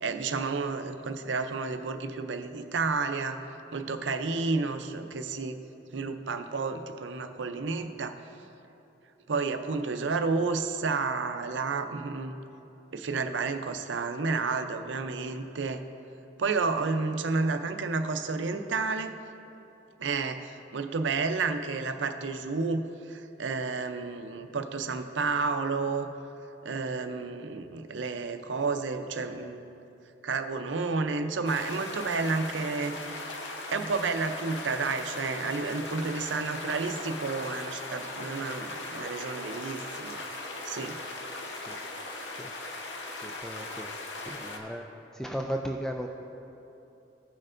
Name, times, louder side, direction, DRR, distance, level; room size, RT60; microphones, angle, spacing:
voice 1, 0.0-3.4 3.7-5.6 5.9-8.2 9.3-12.3 12.9-15.8 16.4-19.1 20.0-26.1 26.6-29.6 30.2-33.1 33.7-40.2 40.6-41.0 43.2-43.4, right 4 dB, 80° right, 7 dB, 0.5 m, -31 dB
sound 1, 31.5-44.6, left 2 dB, 75° left, 0.8 m, -39 dB
voice 2, 43.2-43.9 44.3-44.9 45.1-46.1, equal, 5° left, 1 dB, 0.3 m, -35 dB
15.5 x 6.6 x 2.5 m, 2.9 s
head